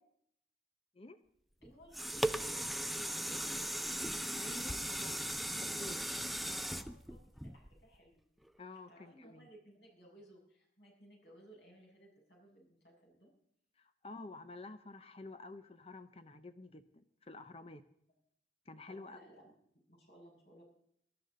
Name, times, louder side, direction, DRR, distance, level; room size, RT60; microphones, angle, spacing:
voice 1, 1.6-3.8 6.2-8.2 8.7-13.3 18.9-19.5 19.9-20.7, right 1 dB, 75° left, -1 dB, 7.1 m, -60 dB
sound 1, 1.6-8.0 8.5-8.6, right 1 dB, ahead, 0.4 m, -38 dB
voice 2, 4.4-6.1 8.6-9.5 13.8-17.8 18.7-19.3, left 2 dB, 35° left, 10 dB, 0.7 m, -50 dB
20.0 x 13.0 x 4.0 m, 0.70 s
head